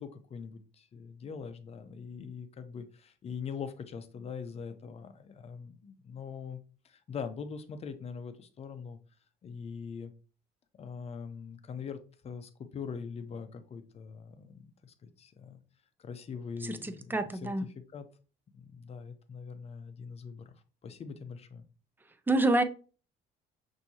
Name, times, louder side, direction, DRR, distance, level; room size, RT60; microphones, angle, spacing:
voice 1, 0.0-6.6 6.8-9.0 9.4-10.1 10.8-15.6 16.0-17.5 17.9-18.1 18.5-20.5 20.8-21.6, left 6 dB, 40° left, 0.6 m, -42 dB
voice 2, 16.6-17.6 22.3-22.6, right 2 dB, 10° right, 0.5 m, -27 dB
5.8 x 2.7 x 2.8 m
cardioid pair, 110°, 17 cm